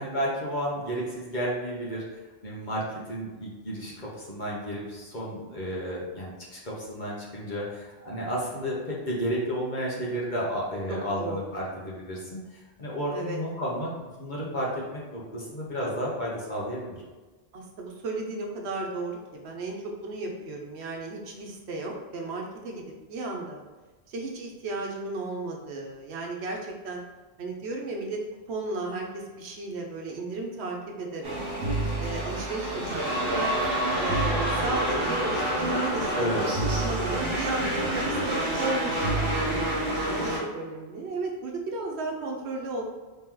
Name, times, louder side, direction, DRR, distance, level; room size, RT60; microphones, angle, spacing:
voice 1, 0.0-2.0 2.4-2.8 3.1-14.7 15.1-17.0 36.1-36.4, equal, 45° left, -5 dB, 1.1 m, -32 dB
voice 2, 10.9-11.4 13.1-13.4 17.5-23.6 24.1-27.0 27.4-28.2 28.5-31.4 32.0-33.6 34.0-39.7 40.1-42.8, right 2 dB, 80° right, 1 dB, 1.0 m, -34 dB
sound 1, 31.2-40.4, right 1 dB, 60° right, 1.4 m, -27 dB
3.3 x 3.0 x 3.7 m, 1.3 s
omnidirectional pair, 1.1 m